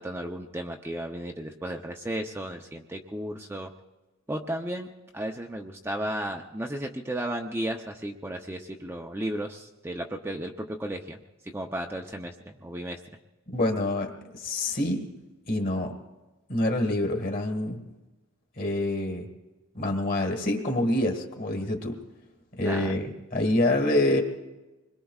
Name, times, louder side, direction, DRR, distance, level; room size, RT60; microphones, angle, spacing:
voice 1, 0.0-3.7 4.3-4.9 5.1-11.2 11.5-13.0 22.6-22.9, right 1 dB, 10° right, 2 dB, 0.6 m, -34 dB
voice 2, 13.5-15.1 15.5-15.9 16.5-17.8 18.6-19.3 19.7-22.0 22.6-24.2, left 1 dB, 40° left, 3 dB, 1.8 m, -26 dB
26.0 x 21.5 x 2.4 m, 1.1 s
head